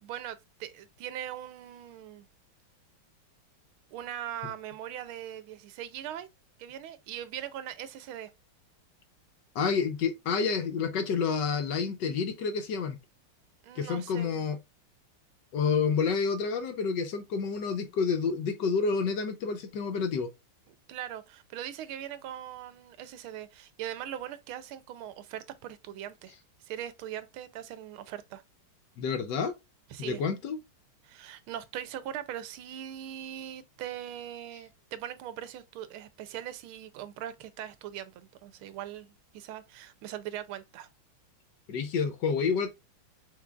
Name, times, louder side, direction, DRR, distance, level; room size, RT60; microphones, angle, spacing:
voice 1, 0.0-2.3 3.9-6.3 6.6-8.3 13.6-14.4 20.9-26.3 26.6-28.4 29.9-30.2 31.0-40.9, right 11 dB, 90° right, 1.5 m, -40 dB
voice 2, 9.5-13.0 13.7-14.6 15.5-20.3 29.0-29.5 30.0-30.6 41.7-42.7, left 5 dB, 70° left, 1.2 m, -29 dB
5.9 x 3.8 x 2.3 m
omnidirectional pair, 2.3 m